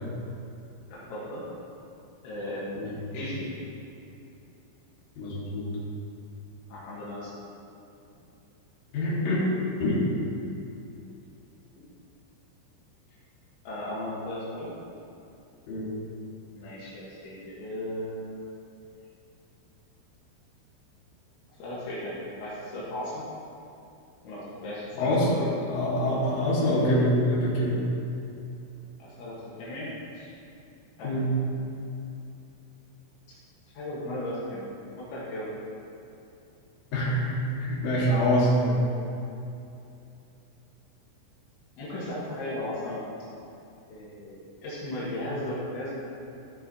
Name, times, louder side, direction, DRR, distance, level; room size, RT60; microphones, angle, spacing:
voice 1, 0.9-1.4 2.2-3.5 6.7-7.3 11.8-11.9 13.7-14.7 16.5-18.5 21.6-23.2 24.2-25.4 29.0-29.9 30.1-30.3 31.0-31.4 33.7-34.7 35.1-35.5 41.8-43.0 43.9-46.0, left 1 dB, 75° left, -8 dB, 3.9 m, -36 dB
voice 2, 5.2-5.7 8.9-9.5 9.8-10.0 15.7-15.9 25.0-27.8 31.0-31.3 36.9-38.8, equal, 55° left, -7 dB, 3.6 m, -25 dB
14.0 x 6.5 x 4.3 m, 2.7 s
omnidirectional pair, 5.6 m